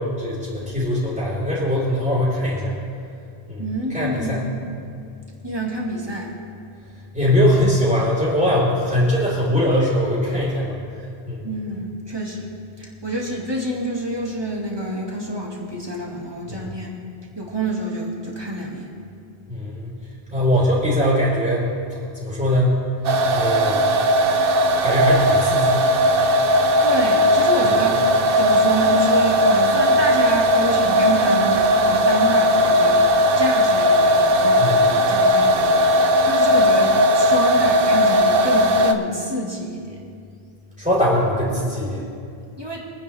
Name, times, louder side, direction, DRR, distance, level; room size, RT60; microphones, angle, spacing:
voice 1, 0.0-2.7 3.5-3.6 3.9-4.4 7.1-10.8 11.3-11.4 16.5-16.7 19.5-20.0 20.3-21.7 22.2-22.8 23.3-23.9 24.8-25.8 34.6-34.9 40.8-42.0, left 1 dB, 10° right, -12 dB, 3.9 m, -21 dB
voice 2, 3.6-4.7 5.4-6.3 11.4-12.5 12.8-17.0 17.4-18.9 26.4-28.0 28.3-33.0 33.4-40.0 42.6-42.8, right 1 dB, 25° right, -3 dB, 2.3 m, -27 dB
sound 1, 23.0-38.9, equal, 65° right, 1.0 m, -17 dB
25.0 x 9.6 x 3.5 m, 2.4 s
omnidirectional pair, 1.0 m